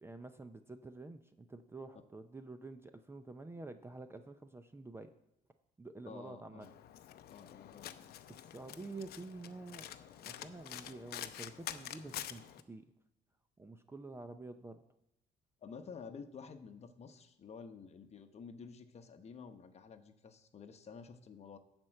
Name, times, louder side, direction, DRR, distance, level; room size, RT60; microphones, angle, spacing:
voice 1, 0.0-5.1 5.8-6.7 8.3-9.9 10.2-12.9 13.6-14.8, right 3 dB, 15° right, 9 dB, 0.5 m, -49 dB
voice 2, 6.1-6.7 7.3-8.1 15.6-21.6, left 5 dB, 40° left, 8 dB, 1.0 m, -51 dB
Domestic sounds home sounds, 6.6-12.6, left 11 dB, 65° left, 0.6 m, -47 dB
12.0 x 4.5 x 7.6 m, 0.86 s
cardioid pair, 110°, 17 cm